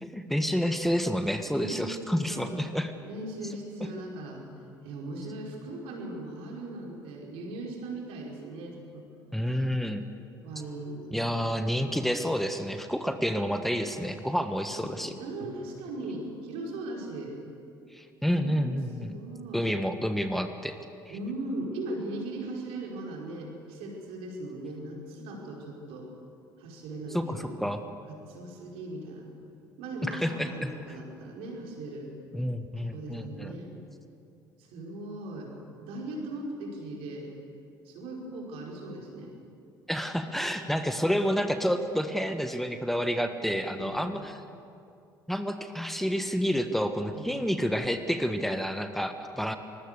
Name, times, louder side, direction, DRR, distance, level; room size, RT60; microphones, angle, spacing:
voice 1, 0.0-2.9 9.3-10.1 11.1-15.1 17.9-19.1 19.5-20.7 27.1-27.8 30.0-30.9 32.3-33.5 39.9-44.4 45.3-49.6, equal, ahead, 8 dB, 1.5 m, -29 dB
voice 2, 1.5-2.5 3.0-4.4 4.8-9.1 10.4-11.1 14.7-17.3 18.3-19.7 21.1-26.1 26.6-27.6 28.1-29.3 29.8-32.1 32.9-33.7 34.6-35.5 35.8-37.3 37.8-39.3 43.7-44.3 47.1-47.4, right 2 dB, 60° right, -1 dB, 5.0 m, -39 dB
24.5 x 21.0 x 6.8 m, 2.6 s
figure-of-eight pair, 55°, 11 cm